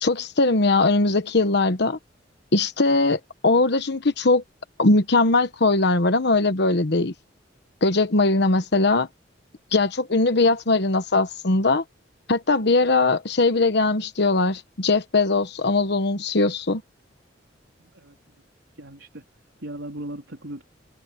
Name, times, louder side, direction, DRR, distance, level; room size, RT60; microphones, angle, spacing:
voice 1, 0.0-2.0 2.5-4.4 4.8-7.1 7.8-9.1 9.7-11.8 12.3-16.8, left 3 dB, 65° left, 1.2 m, -20 dB
voice 2, 17.8-18.4 18.8-19.2 19.6-20.6, right 1 dB, 85° right, 4.0 m, -38 dB
head